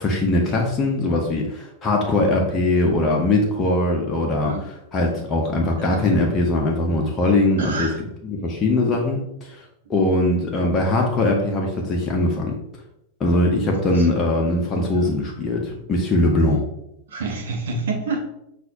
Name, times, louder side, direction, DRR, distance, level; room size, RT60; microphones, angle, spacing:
voice 1, 0.0-4.5 4.9-7.9 8.3-9.6 9.9-12.5 13.2-16.6, left 2 dB, 25° left, -1 dB, 0.7 m, -21 dB
voice 2, 5.7-6.0 7.6-8.0 13.8-14.1 14.9-15.1 16.3-16.5 17.1-18.2, right 3 dB, 60° right, 2 dB, 0.8 m, -28 dB
5.8 x 2.4 x 2.7 m, 0.81 s
figure-of-eight pair, 90°, 0 cm